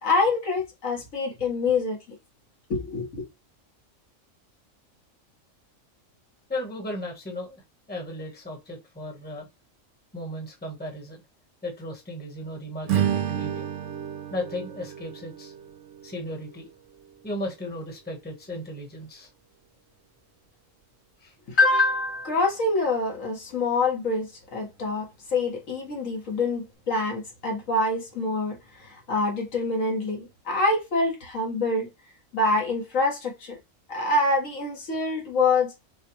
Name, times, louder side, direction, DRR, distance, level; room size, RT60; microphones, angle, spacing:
voice 1, 0.0-2.0 2.7-3.3 21.5-25.1 25.3-28.6 29.1-31.9 32.3-33.5 33.9-35.7, left 3 dB, 75° left, 1.8 m, -25 dB
voice 2, 6.5-7.5 7.9-9.5 10.1-11.2 11.6-13.6 14.3-15.5 16.0-16.7 17.2-19.3 21.2-21.3, left 1 dB, 10° left, 1.0 m, -35 dB
Strum, 12.8-17.3, right 10 dB, 70° right, 1.1 m, -31 dB
6.5 x 2.3 x 3.0 m
omnidirectional pair, 1.4 m